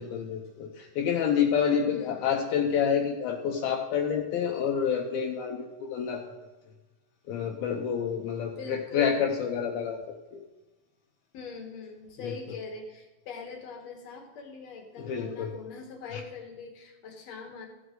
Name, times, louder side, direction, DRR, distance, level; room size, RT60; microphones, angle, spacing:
voice 1, 0.0-6.3 7.3-10.0 10.3-10.4 12.2-12.3 15.0-15.5 16.1-16.2, left 7 dB, 75° left, 1 dB, 2.6 m, -28 dB
voice 2, 1.9-2.4 8.6-9.2 11.3-17.7, left 5 dB, 55° left, 3 dB, 2.0 m, -42 dB
15.5 x 8.0 x 3.8 m, 1.1 s
omnidirectional pair, 4.6 m